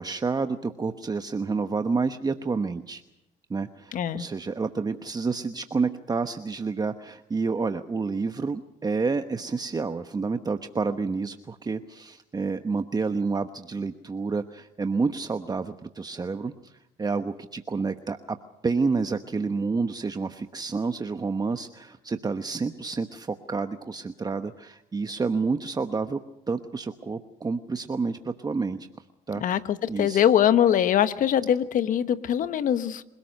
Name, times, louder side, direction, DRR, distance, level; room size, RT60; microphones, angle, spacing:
voice 1, 0.0-3.0 3.5-16.7 17.0-18.4 18.6-26.2 26.5-28.9 29.3-29.6 29.9-30.2, right 4 dB, 25° right, 8 dB, 1.1 m, -29 dB
voice 2, 3.9-4.2 29.4-33.0, left 10 dB, 65° left, 12 dB, 1.3 m, -22 dB
27.5 x 18.0 x 6.6 m, 0.85 s
supercardioid pair, 75°, 15 cm